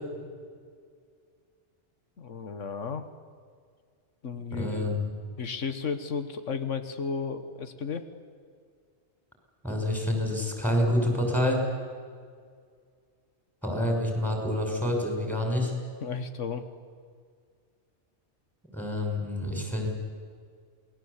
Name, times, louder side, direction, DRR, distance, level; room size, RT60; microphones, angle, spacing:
voice 1, 2.2-3.1 4.2-4.8 5.4-8.1 16.0-16.6, left 5 dB, 90° left, 9 dB, 1.7 m, -33 dB
voice 2, 4.5-5.1 9.6-11.6 13.6-15.7 18.7-19.9, left 1 dB, ahead, 1 dB, 5.9 m, -27 dB
28.0 x 20.5 x 8.3 m, 2.1 s
omnidirectional pair, 1.2 m